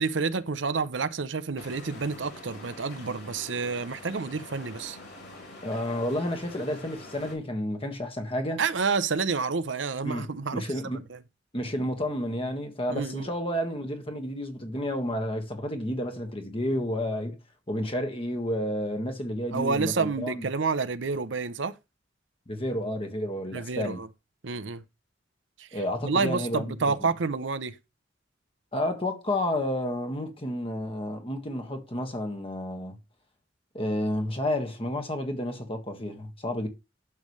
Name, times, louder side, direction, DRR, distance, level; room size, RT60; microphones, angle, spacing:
voice 1, 0.0-5.0 8.6-11.2 12.9-13.3 19.5-21.7 23.5-24.1 24.4-24.8 25.6-27.7, right 4 dB, 75° right, 0.7 m, -29 dB
sound 1, 1.6-7.3, left 2 dB, 60° left, 3.7 m, -45 dB
voice 2, 5.6-8.6 10.0-11.0 11.5-17.4 17.7-20.4 22.5-24.0 25.7-26.9 28.7-33.0 33.7-36.7, left 1 dB, 30° left, 1.7 m, -31 dB
12.0 x 6.9 x 3.2 m
head